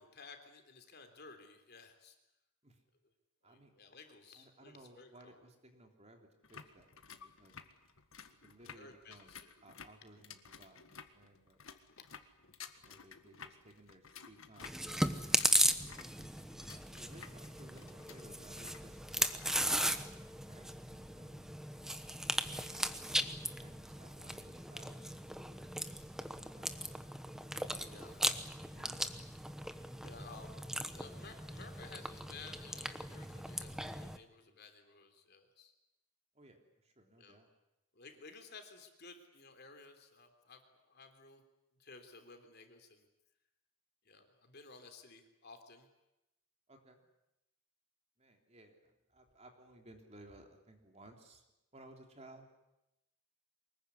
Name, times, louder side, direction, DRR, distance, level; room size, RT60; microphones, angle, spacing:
voice 1, 0.0-2.2 3.4-5.4 8.8-9.5 27.9-28.4 30.0-30.6 30.9-35.7 37.2-37.4 37.9-41.4 41.8-43.1 44.1-45.9, left 4 dB, 50° left, 6 dB, 3.5 m, -55 dB
voice 2, 4.1-7.6 8.4-9.4 9.6-11.6 12.8-15.0 17.0-21.8 23.1-27.0 27.5-28.2 28.6-29.0 36.3-36.6 36.8-37.5 46.7-47.0 48.2-51.4 51.7-52.5, right 1 dB, 30° right, 3 dB, 3.4 m, -60 dB
sound 1, 6.4-20.0, left 6 dB, 70° left, 1.8 m, -55 dB
Chewing mastication, 14.6-34.2, right 1 dB, ahead, 1.1 m, -37 dB
24.5 x 21.5 x 9.8 m, 0.90 s
head